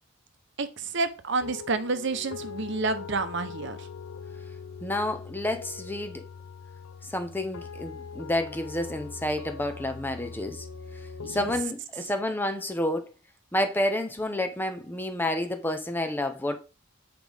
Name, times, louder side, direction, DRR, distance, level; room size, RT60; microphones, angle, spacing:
voice 1, 0.6-3.9 11.2-11.5, right 3 dB, 60° right, 0.8 m, -29 dB
sound 1, 1.4-11.6, left 5 dB, 85° left, 0.6 m, -42 dB
voice 2, 4.8-6.2 7.0-10.7 11.3-13.1 13.5-16.6, left 1 dB, 10° left, 0.7 m, -29 dB
8.3 x 5.0 x 3.5 m
head